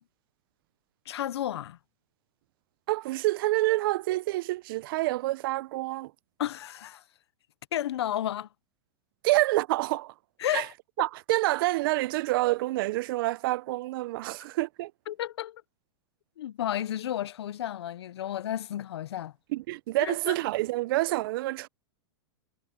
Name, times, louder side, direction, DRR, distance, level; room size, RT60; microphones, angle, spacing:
voice 1, 1.1-1.8 6.4-7.0 7.7-8.5 10.4-10.7 15.1-15.6 16.4-19.3 20.0-20.4, left 11 dB, 85° left, 0.7 m, -32 dB
voice 2, 2.9-6.1 9.2-10.1 10.5-10.7 11.0-14.9 19.5-21.7, right 19 dB, 60° right, 0.6 m, -27 dB
hypercardioid pair, 135°, 13 cm